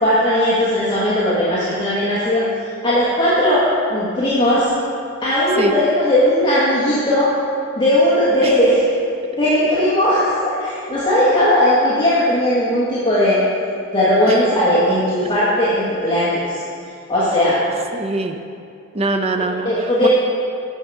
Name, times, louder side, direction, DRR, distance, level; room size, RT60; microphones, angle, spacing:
voice 1, 0.0-2.4 2.8-4.7 5.2-7.3 7.8-8.8 9.4-13.4 13.9-16.6 17.1-17.6 19.4-20.1, left 1 dB, 20° left, -10 dB, 1.3 m, -17 dB
voice 2, 17.9-18.4 18.9-20.1, right 2 dB, 30° right, 6 dB, 0.5 m, -23 dB
8.9 x 6.5 x 4.6 m, 2.4 s
head